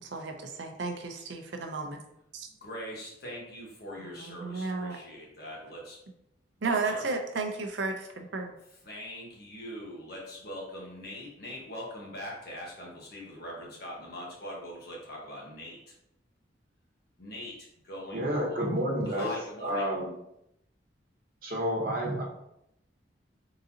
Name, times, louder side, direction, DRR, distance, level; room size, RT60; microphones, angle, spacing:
voice 1, 0.0-2.0 2.3-2.5 4.0-5.0 6.6-8.5, right 3 dB, 75° right, 4 dB, 0.6 m, -33 dB
voice 2, 2.6-6.0 6.6-7.0 8.8-15.9 17.2-18.6 19.0-19.9, left 1 dB, 55° left, -3 dB, 1.3 m, -41 dB
voice 3, 18.1-19.3 19.6-20.1 21.4-22.2, equal, 50° right, -2 dB, 1.1 m, -29 dB
3.9 x 3.7 x 2.8 m, 0.81 s
head